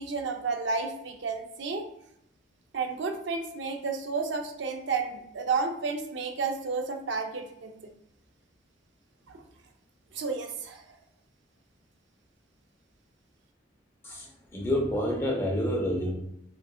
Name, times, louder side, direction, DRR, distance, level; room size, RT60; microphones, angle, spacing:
voice 1, 0.0-1.8 2.7-7.7 9.3-9.4 10.1-10.8, right 4 dB, 65° right, 4 dB, 0.5 m, -31 dB
voice 2, 14.0-16.1, equal, 15° left, -2 dB, 0.7 m, -28 dB
3.8 x 2.5 x 2.3 m, 0.75 s
head